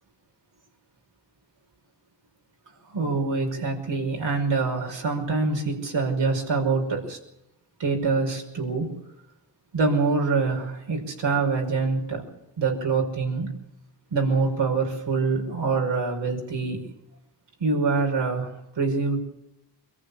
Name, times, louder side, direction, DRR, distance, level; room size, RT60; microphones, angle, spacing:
voice 1, 2.9-7.2 7.8-8.9 9.7-12.3 12.6-13.5 14.1-16.8 17.6-19.2, right 4 dB, 85° right, 1 dB, 5.7 m, -25 dB
24.5 x 14.5 x 8.5 m, 0.87 s
supercardioid pair, 40°, 42 cm